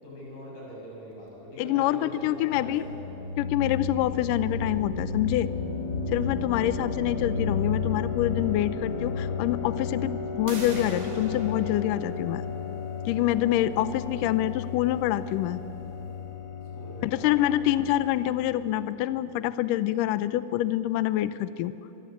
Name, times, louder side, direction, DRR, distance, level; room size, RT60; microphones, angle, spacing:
voice 1, 0.0-3.1 16.7-17.6, equal, 60° left, -4 dB, 9.2 m, -43 dB
voice 2, 1.6-2.8 3.4-5.5 6.1-12.4 13.1-15.6 17.0-21.7, left 13 dB, 85° left, 14 dB, 1.9 m, -26 dB
sound 1, 2.1-18.8, left 5 dB, 30° left, 2.5 m, -33 dB
sound 2, 10.5-16.1, right 3 dB, 75° right, 4.9 m, -45 dB
26.0 x 22.5 x 8.3 m, 3.0 s
omnidirectional pair, 4.6 m